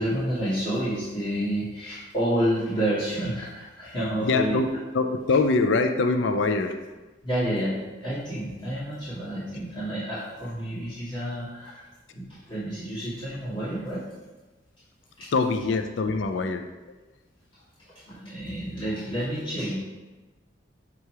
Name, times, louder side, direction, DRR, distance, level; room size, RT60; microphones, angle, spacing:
voice 1, 0.0-4.6 7.2-11.9 12.1-14.0 15.2-15.3 17.9-19.8, right 1 dB, 30° left, -11 dB, 1.9 m, -29 dB
voice 2, 4.2-4.7 4.9-6.9 15.3-17.0, left 3 dB, 80° left, 7 dB, 0.4 m, -24 dB
6.7 x 3.0 x 4.7 m, 1.2 s
head